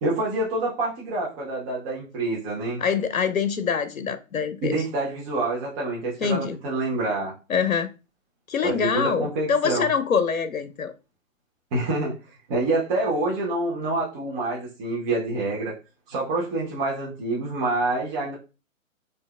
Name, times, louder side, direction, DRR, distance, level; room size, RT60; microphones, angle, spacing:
voice 1, 0.0-2.8 4.6-7.4 8.6-9.9 11.7-12.2 12.5-15.7 16.1-18.4, right 2 dB, 25° right, 0.9 m, -27 dB
voice 2, 2.8-4.8 6.2-6.6 7.5-7.9 8.5-10.9, left 6 dB, 85° left, 0.6 m, -24 dB
4.4 x 2.6 x 2.3 m
figure-of-eight pair, 130°, 41 cm